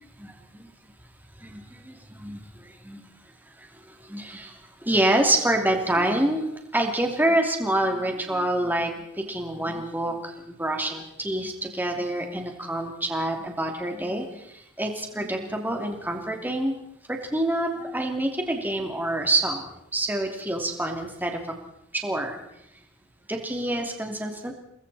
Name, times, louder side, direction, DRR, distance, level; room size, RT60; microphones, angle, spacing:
voice 1, 1.4-2.4 2.8-3.0 4.1-4.5 4.8-6.5 6.7-8.9 9.2-10.3 10.6-14.4 14.8-16.7 17.3-19.6 19.9-21.3 21.9-22.4 23.3-24.5, right 1 dB, 10° right, 3 dB, 2.8 m, -26 dB
28.5 x 21.0 x 4.3 m, 0.77 s
head